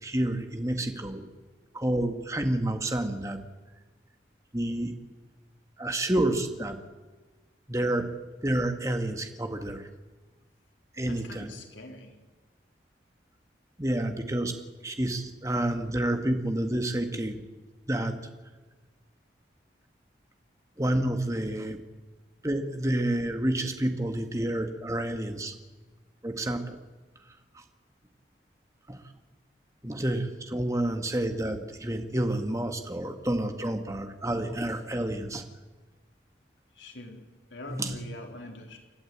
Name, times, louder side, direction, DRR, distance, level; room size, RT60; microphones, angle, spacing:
voice 1, 0.0-1.3 1.7-3.4 4.5-4.9 5.8-6.8 7.7-8.1 8.4-9.9 10.9-11.5 13.8-14.5 14.8-17.4 17.9-18.2 20.8-21.8 22.4-25.5 26.2-26.8 27.5-27.6 28.9-29.0 29.8-35.4 37.7-38.0, right 1 dB, 15° right, 5 dB, 1.7 m, -29 dB
voice 2, 11.1-12.1 36.7-37.2 37.5-38.8, left 2 dB, 90° left, 2 dB, 4.0 m, -44 dB
29.0 x 12.5 x 8.8 m, 1.3 s
head